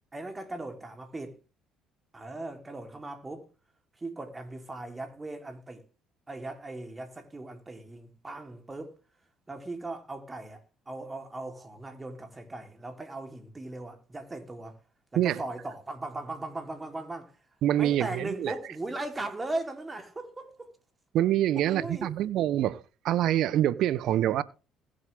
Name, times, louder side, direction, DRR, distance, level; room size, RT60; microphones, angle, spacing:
voice 1, 0.1-1.4 2.1-3.5 4.0-5.8 6.3-8.9 9.5-10.6 10.9-14.8 15.1-17.3 17.8-20.7 21.5-22.1, right 2 dB, 20° right, 3.3 m, -38 dB
voice 2, 17.6-18.5 21.1-24.4, right 12 dB, 65° right, 0.8 m, -26 dB
20.0 x 7.9 x 3.4 m
hypercardioid pair, 55°, 0 cm